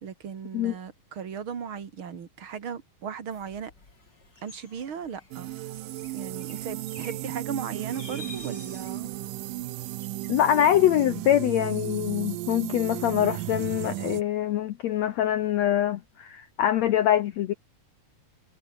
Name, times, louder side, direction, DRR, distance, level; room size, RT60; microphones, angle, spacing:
voice 1, 0.0-3.7 4.4-5.5 6.1-9.1, right 7 dB, 40° right, 2.4 m, -37 dB
sound 1, 3.3-10.4, left 3 dB, 25° left, 4.9 m, -50 dB
sound 2, 5.3-14.2, right 16 dB, 75° right, 2.3 m, -35 dB
voice 2, 10.3-17.5, left 11 dB, 90° left, 1.5 m, -24 dB
omnidirectional pair, 4.3 m